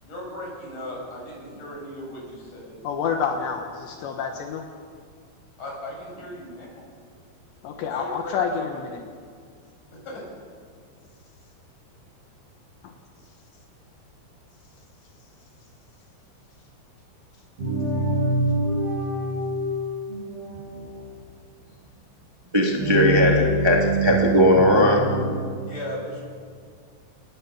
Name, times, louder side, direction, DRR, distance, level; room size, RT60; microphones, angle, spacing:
voice 1, 0.0-2.7 5.6-6.9 7.8-8.6 8.9-9.1 9.9-10.3 25.6-26.2, left 1 dB, 40° left, -2 dB, 8.1 m, -37 dB
voice 2, 2.8-4.7 7.6-9.0 12.8-12.9, left 6 dB, 75° left, 3 dB, 3.4 m, -28 dB
sound 1, 17.6-21.1 22.7-25.3, right 2 dB, 55° right, 9.2 m, -25 dB
voice 3, 22.5-25.0, left 1 dB, 20° right, 0 dB, 0.7 m, -18 dB
28.5 x 20.0 x 7.4 m, 2.1 s
omnidirectional pair, 5.4 m